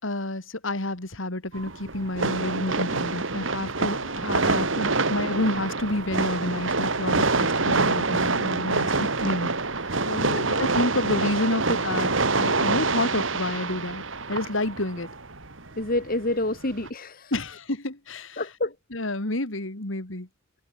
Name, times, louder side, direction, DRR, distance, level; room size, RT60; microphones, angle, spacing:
voice 1, 0.0-9.5 9.8-10.2 10.5-14.0 14.3-15.1 17.3-18.4 18.9-20.3, left 1 dB, 70° left, 2.8 m, -29 dB
sound 1, 1.5-16.9, right 3 dB, 70° right, 2.8 m, -26 dB
voice 2, 10.1-10.5 15.8-17.3 18.4-18.7, left 1 dB, 45° left, 2.9 m, -29 dB
head